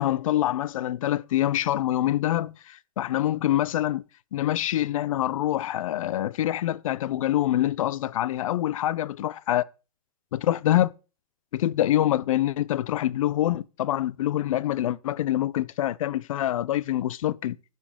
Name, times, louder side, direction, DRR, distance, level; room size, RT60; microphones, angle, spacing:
voice 1, 0.0-4.0 4.3-9.6 10.3-10.9 11.5-17.6, left 13 dB, 55° left, 0.4 m, -25 dB
12.0 x 5.3 x 3.5 m
hypercardioid pair, 150°, 20 cm